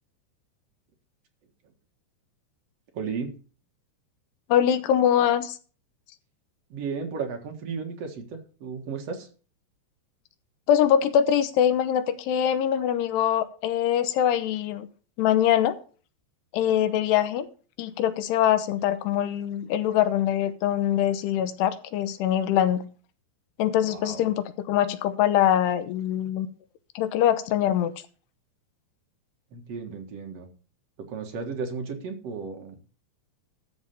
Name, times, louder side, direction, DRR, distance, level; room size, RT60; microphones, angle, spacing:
voice 1, 2.9-3.3 6.7-9.3 23.8-24.3 29.5-30.5 31.0-32.8, right 5 dB, 55° right, 4 dB, 1.9 m, -34 dB
voice 2, 4.5-5.6 10.7-14.9 15.2-15.8 16.5-17.5 17.8-22.8 23.6-26.5 27.0-27.9, left 10 dB, 80° left, 11 dB, 2.9 m, -23 dB
13.5 x 5.3 x 6.8 m, 0.39 s
omnidirectional pair, 4.9 m